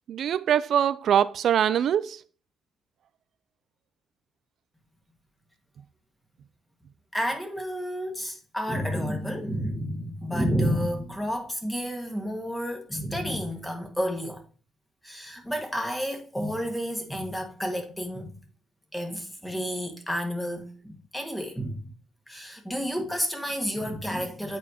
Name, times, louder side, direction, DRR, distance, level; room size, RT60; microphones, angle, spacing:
voice 1, 0.1-2.2, right 9 dB, 65° right, 0.4 m, -23 dB
voice 2, 7.1-14.4 15.0-18.4 18.9-21.9 22.3-24.6, equal, 5° left, 1.7 m, -30 dB
8.3 x 4.3 x 2.9 m
cardioid pair, 90°, 0 cm